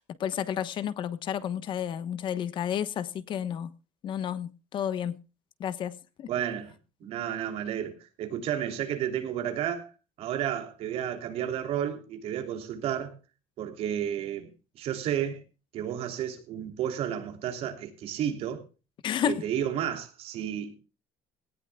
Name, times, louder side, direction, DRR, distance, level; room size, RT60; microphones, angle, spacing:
voice 1, 0.2-3.7 4.0-5.2 5.6-6.3 19.0-19.4, left 9 dB, 45° left, 1.1 m, -31 dB
voice 2, 6.3-6.7 7.0-9.9 10.2-13.1 13.6-14.5 14.8-15.4 15.7-18.6 19.2-20.8, right 10 dB, 60° right, 3.1 m, -32 dB
18.5 x 18.0 x 2.3 m
cardioid pair, 175°, 12 cm